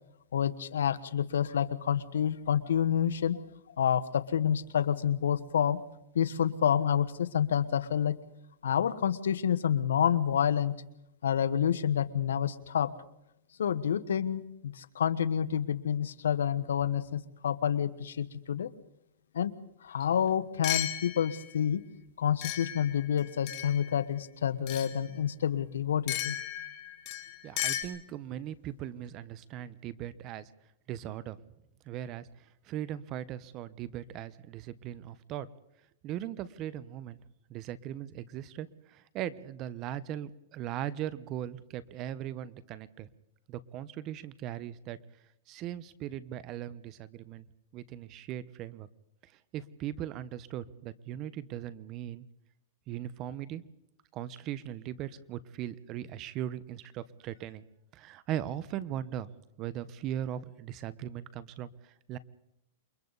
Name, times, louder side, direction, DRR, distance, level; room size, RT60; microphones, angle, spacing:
voice 1, 0.3-3.4 3.8-5.8 6.1-8.2 8.6-10.7 11.2-12.9 13.6-18.7 19.3-19.5 19.8-21.8 22.2-26.4, left 8 dB, 85° left, 12 dB, 1.2 m, -28 dB
sound 1, 20.0-20.1 20.6-21.5 22.4-23.9 24.7-25.0 26.1-27.8, left 13 dB, 40° left, 3.0 m, -35 dB
voice 2, 27.4-30.5 30.9-31.4 31.9-32.3 32.6-35.5 36.0-37.2 37.5-43.1 43.5-45.0 45.5-47.5 47.7-48.9 49.5-52.2 52.9-53.6 54.1-57.6 57.9-59.3 59.6-62.2, right 11 dB, 35° right, 16 dB, 1.0 m, -39 dB
28.5 x 23.0 x 4.1 m, 0.82 s
hypercardioid pair, 135°, 0 cm